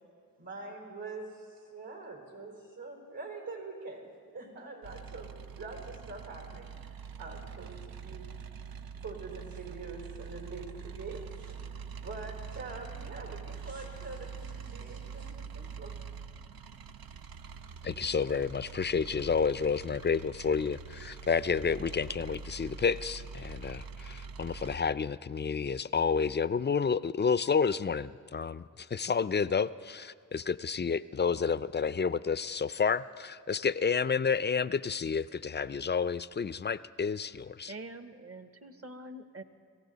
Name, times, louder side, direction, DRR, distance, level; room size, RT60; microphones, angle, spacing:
voice 1, 0.4-4.0 4.3-8.3 9.0-11.6 12.0-15.9, right 3 dB, 75° right, 0 dB, 4.5 m, -44 dB
sound 1, 4.8-24.8, right 6 dB, 90° right, 0.6 m, -44 dB
voice 2, 17.8-37.7, left 6 dB, 30° left, 16 dB, 0.4 m, -30 dB
voice 3, 37.7-39.4, right 2 dB, 40° right, 9 dB, 1.1 m, -45 dB
23.0 x 15.5 x 4.0 m, 2.4 s
cardioid pair, 45°, 35 cm